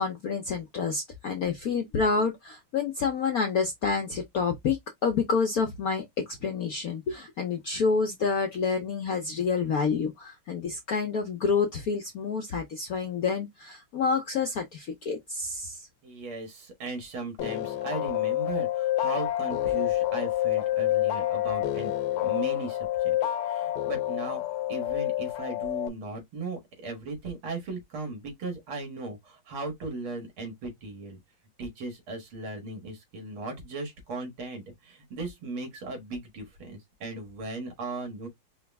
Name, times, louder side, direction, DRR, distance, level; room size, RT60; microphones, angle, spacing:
voice 1, 0.0-4.8 5.0-15.9, left 5 dB, 65° left, 0.9 m, -28 dB
voice 2, 16.0-21.9 22.2-24.4 24.7-31.2 31.6-38.3, right 3 dB, 70° right, 2.5 m, -37 dB
sound 1, 17.4-25.9, left 13 dB, 80° left, 1.6 m, -28 dB
4.9 x 2.3 x 3.4 m
omnidirectional pair, 2.4 m